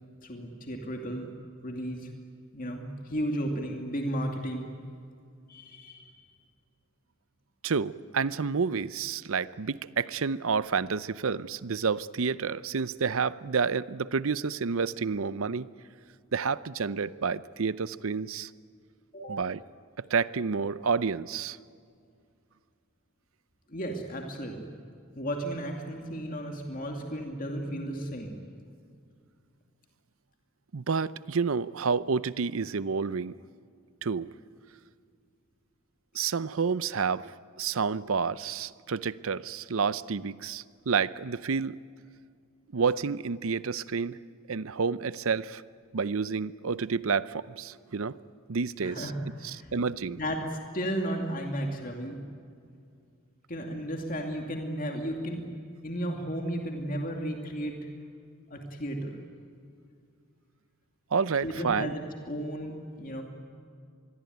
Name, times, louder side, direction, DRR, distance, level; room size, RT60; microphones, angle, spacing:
voice 1, 0.2-1.3 1.6-2.1 2.5-4.7 5.5-6.2 19.1-19.4 23.7-24.6 25.1-28.3 48.8-49.7 50.2-52.2 53.5-55.4 55.8-57.8 58.5-59.2 61.4-63.2, equal, 40° left, 2 dB, 2.5 m, -34 dB
voice 2, 7.6-15.7 16.3-18.5 19.2-19.6 20.0-21.6 30.7-33.3 34.0-34.3 36.1-37.3 37.6-41.8 42.7-44.2 44.5-45.6 45.9-48.2 48.5-49.1 49.7-50.2 61.1-61.9, right 5 dB, 70° right, 17 dB, 0.6 m, -29 dB
25.5 x 21.5 x 9.3 m, 2.3 s
head